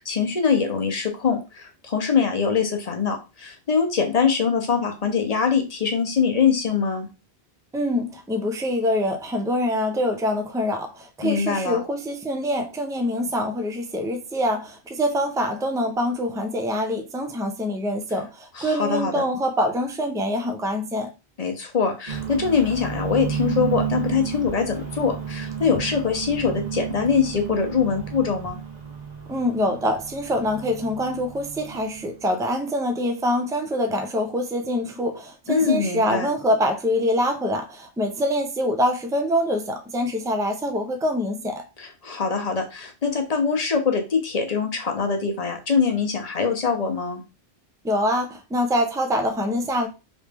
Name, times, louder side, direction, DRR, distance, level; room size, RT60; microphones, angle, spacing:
voice 1, 0.0-7.1 11.2-11.8 18.5-19.3 21.4-28.6 35.5-36.3 41.8-47.2, left 6 dB, 40° left, 0.7 m, -23 dB
voice 2, 7.7-21.1 29.3-41.6 47.8-49.9, equal, 5° right, 0.3 m, -25 dB
sound 1, 22.1-32.3, right 7 dB, 45° right, 0.8 m, -32 dB
3.1 x 3.0 x 3.3 m
omnidirectional pair, 1.1 m